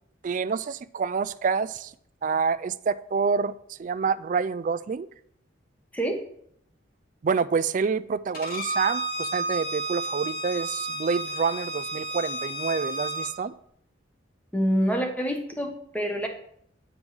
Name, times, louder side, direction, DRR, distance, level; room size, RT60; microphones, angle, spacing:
voice 1, 0.2-1.9 2.2-5.1 7.2-13.5, right 5 dB, 40° right, 15 dB, 0.3 m, -27 dB
Bowed string instrument, 8.3-13.3, right 2 dB, 45° left, 2.2 m, -31 dB
voice 2, 14.5-16.3, equal, 5° left, 3 dB, 1.0 m, -26 dB
9.6 x 5.3 x 4.8 m, 0.68 s
head